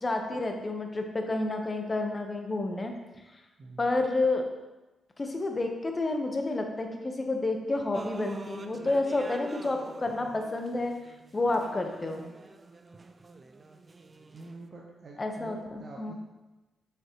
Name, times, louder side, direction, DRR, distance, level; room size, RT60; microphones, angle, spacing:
voice 1, 0.0-2.9 3.3-3.4 3.8-4.4 5.2-10.9 11.3-12.3 15.2-16.1, left 2 dB, 35° left, 4 dB, 1.2 m, -30 dB
voice 2, 3.6-3.9 14.3-16.1, right 3 dB, 50° right, -1 dB, 0.9 m, -47 dB
sound 1, 7.9-14.7, right 3 dB, 35° right, 0.5 m, -47 dB
7.0 x 6.6 x 3.1 m, 1.1 s
supercardioid pair, 45°, 0 cm